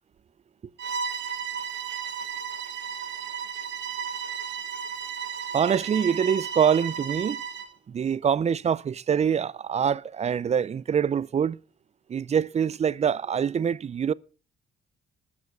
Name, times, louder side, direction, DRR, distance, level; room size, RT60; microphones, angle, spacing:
Bowed string instrument, 0.8-7.7, right 7 dB, 65° right, 1.5 m, -34 dB
voice 1, 5.5-7.4 7.9-11.6 12.1-14.1, right 7 dB, 35° right, 0.5 m, -25 dB
13.0 x 7.2 x 6.7 m
cardioid pair, 90°, 20 cm